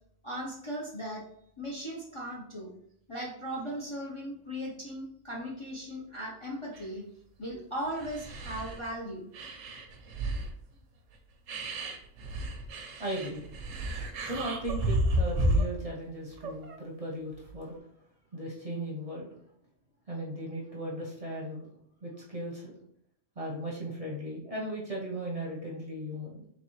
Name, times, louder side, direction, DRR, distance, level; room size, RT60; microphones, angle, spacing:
voice 1, 0.2-1.2 1.6-2.7 3.1-7.0 7.4-9.3, equal, 30° left, -2 dB, 0.6 m, -37 dB
sound 1, 6.7-6.9 7.5-7.6 7.9-9.0 9.3-10.5 11.1-11.2 11.5-15.9 16.3-16.8 17.5-17.8, right 1 dB, 85° right, 1.1 m, -32 dB
voice 2, 13.0-13.4 14.3-17.7 18.3-19.3 20.1-21.7 22.0-22.7 23.4-26.5, right 1 dB, 35° right, -3 dB, 0.8 m, -37 dB
4.1 x 3.4 x 3.0 m, 0.71 s
omnidirectional pair, 1.3 m